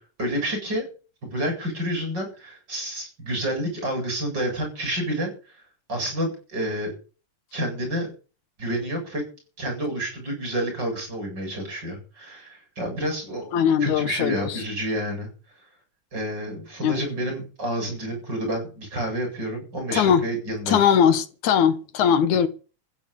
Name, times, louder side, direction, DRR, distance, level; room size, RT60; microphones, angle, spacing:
voice 1, 0.2-0.9 1.3-5.3 5.9-6.9 7.5-8.1 8.6-9.2 9.6-13.5 13.8-15.3 16.1-20.8, right 1 dB, 35° right, 8.8 m, -29 dB
voice 2, 13.5-14.6 16.8-17.0 19.9-20.2 20.7-22.5, left 8 dB, 80° left, 2.6 m, -20 dB
15.0 x 9.2 x 8.6 m
omnidirectional pair, 3.5 m